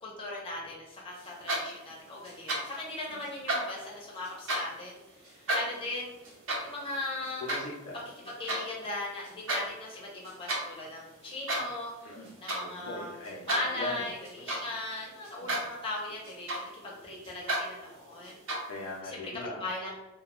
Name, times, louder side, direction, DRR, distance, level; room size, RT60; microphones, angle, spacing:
voice 1, 0.0-5.0 5.2-6.1 6.6-7.5 8.4-12.1 12.4-13.1 13.5-18.4 19.0-19.9, left 2 dB, 25° left, -4 dB, 0.6 m, -38 dB
sound 1, 1.2-1.9 2.2-2.8 3.2-4.8 5.2-8.6 9.1-9.6 10.0-10.7 11.2-11.8 12.1-12.7 13.0-14.8 15.2-15.8 16.1-16.9 17.2-17.7 18.2-18.8, right 1 dB, 65° right, 0.7 m, -33 dB
voice 2, 7.4-8.0 12.0-12.3 12.6-13.5 13.8-14.2 15.4-15.6 18.7-19.6, left 2 dB, 70° left, -2 dB, 0.5 m, -39 dB
2.2 x 2.2 x 2.9 m, 1.0 s
head